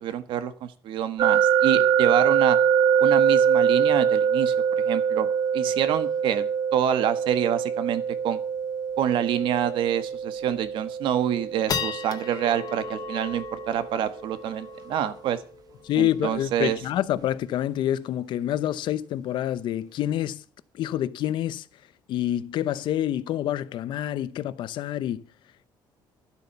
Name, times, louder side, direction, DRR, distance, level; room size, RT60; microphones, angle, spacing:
voice 1, 0.0-2.6 3.0-4.5 4.8-5.3 5.5-6.5 6.7-8.4 9.0-15.4 16.0-16.8, right 10 dB, 70° right, 1.5 m, -27 dB
sound 1, 1.2-14.1, right 7 dB, 45° right, 0.9 m, -24 dB
sound 2, 8.2-8.3 8.5-8.6 9.0-9.3 9.8-9.9 10.4-10.8 11.2-17.8, left 6 dB, 50° left, 1.6 m, -37 dB
voice 2, 15.8-20.4 20.7-21.7 22.1-25.3, left 12 dB, 65° left, 0.8 m, -27 dB
12.0 x 8.1 x 6.8 m
cardioid pair, 145°, 9 cm